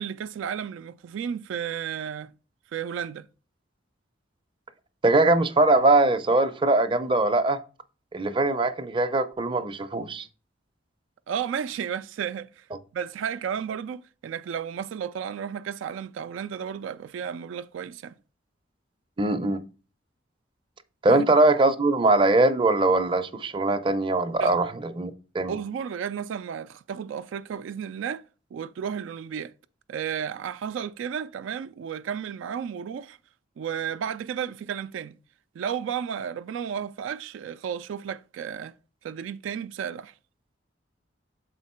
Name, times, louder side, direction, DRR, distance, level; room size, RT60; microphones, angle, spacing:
voice 1, 0.0-2.3 2.7-3.3 11.3-12.7 12.9-18.2 21.1-21.3 24.4-24.6 25.5-28.2 28.5-29.5 29.9-33.2 33.6-35.2 35.6-38.7 39.0-40.1, right 8 dB, 85° right, 0.3 m, -33 dB
voice 2, 5.0-7.6 8.1-10.3 19.2-19.6 21.0-25.5, right 2 dB, 25° right, 0.5 m, -22 dB
6.5 x 4.4 x 4.2 m
head